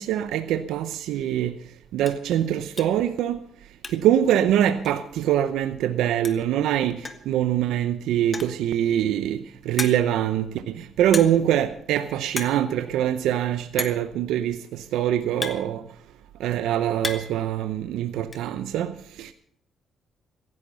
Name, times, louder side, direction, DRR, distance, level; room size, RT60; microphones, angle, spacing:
voice 1, 0.0-1.5 1.9-3.4 3.9-7.0 7.3-9.4 9.7-14.6 14.9-15.8 16.4-18.9 19.2-19.3, right 11 dB, 85° right, 0.7 m, -23 dB
sound 1, 1.1-1.2 1.6-1.7 2.0-2.3 2.8-3.1 3.4-4.2 4.5-4.6 4.9-5.0 6.0-6.1 6.2-6.6 7.0-7.3 8.2-8.7 9.2-9.3 9.8-10.2 11.1-11.5 11.8-12.0 12.3-12.6 12.9-13.0 13.8-14.1 14.9-16.2 16.6-17.4 17.7-18.4, left 3 dB, 25° left, 1.8 m, -34 dB
15.5 x 11.0 x 6.8 m
cardioid pair, 90°, 0 cm